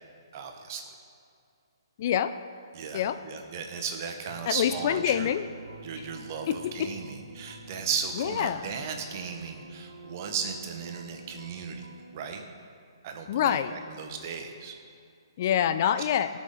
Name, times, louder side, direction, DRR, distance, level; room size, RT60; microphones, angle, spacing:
voice 1, 0.3-0.8 2.7-5.3 5.8-11.9 12.1-12.4 13.0-14.7, right 6 dB, 40° right, 4 dB, 1.2 m, -36 dB
voice 2, 2.0-2.3 2.9-3.2 4.5-5.4 6.5-6.6 8.2-8.7 13.3-13.7 15.4-16.3, left 10 dB, 40° left, 11 dB, 0.4 m, -26 dB
sound 1, 4.2-12.3, right 1 dB, 70° right, 1.8 m, -48 dB
18.0 x 6.3 x 3.9 m, 2.4 s
figure-of-eight pair, 130°, 2 cm